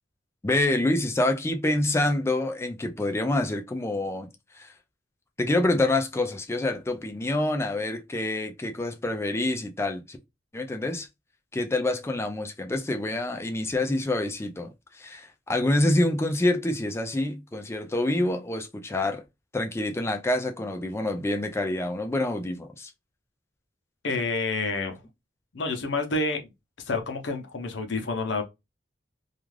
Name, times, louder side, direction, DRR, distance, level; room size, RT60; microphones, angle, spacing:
voice 1, 0.4-4.3 4.5-4.7 5.4-10.2 10.5-11.1 11.5-19.2 19.5-22.9, left 1 dB, 15° left, 0.4 m, -27 dB
voice 2, 24.0-25.0 25.5-26.5 26.9-28.4, left 3 dB, 80° left, 0.6 m, -28 dB
2.4 x 2.3 x 3.2 m
head